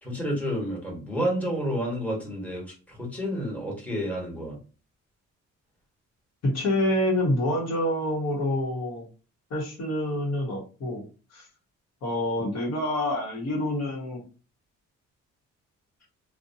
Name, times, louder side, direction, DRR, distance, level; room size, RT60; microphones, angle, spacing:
voice 1, 0.0-4.6, equal, 5° left, -4 dB, 1.3 m, -30 dB
voice 2, 6.4-9.1 9.5-11.0 11.3-11.5 12.0-14.2, left 1 dB, 60° left, -2 dB, 1.1 m, -27 dB
2.5 x 2.2 x 2.7 m, 0.36 s
cardioid pair, 90°, 30 cm